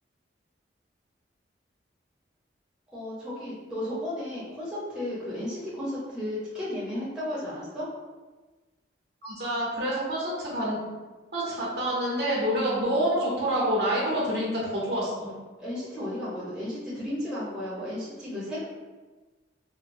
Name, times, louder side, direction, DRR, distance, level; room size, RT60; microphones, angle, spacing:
voice 1, 2.9-7.9 15.6-18.6, left 1 dB, 5° right, -10 dB, 0.7 m, -34 dB
voice 2, 9.2-10.8 11.3-15.3, right 1 dB, 60° right, -5 dB, 0.8 m, -27 dB
3.0 x 2.1 x 2.6 m, 1.3 s
head